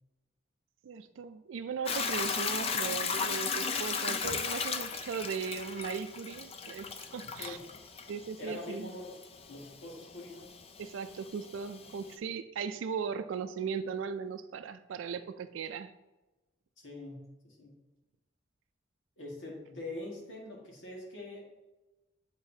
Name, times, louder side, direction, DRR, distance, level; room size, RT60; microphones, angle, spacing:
voice 1, 0.8-7.6 8.1-8.9 10.8-15.9, right 6 dB, 85° right, 10 dB, 0.3 m, -38 dB
Hiss / Toilet flush / Trickle dribble, 1.9-12.1, left 5 dB, 30° left, 0.4 m, -36 dB
voice 2, 8.4-9.2 9.5-10.5 16.8-17.7 19.2-21.5, left 2 dB, 80° left, -3 dB, 1.7 m, -44 dB
8.8 x 4.0 x 2.7 m, 1.1 s
head